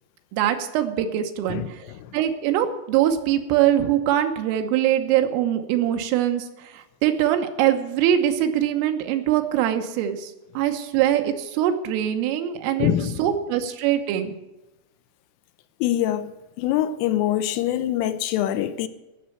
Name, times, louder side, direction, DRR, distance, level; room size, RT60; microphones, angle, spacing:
voice 1, 0.3-1.8 2.1-12.9 13.2-14.3, right 11 dB, 80° right, 3.5 m, -23 dB
voice 2, 12.8-13.2 15.8-16.3 16.6-18.9, left 11 dB, 85° left, 3.2 m, -24 dB
15.5 x 6.8 x 9.1 m
omnidirectional pair, 5.9 m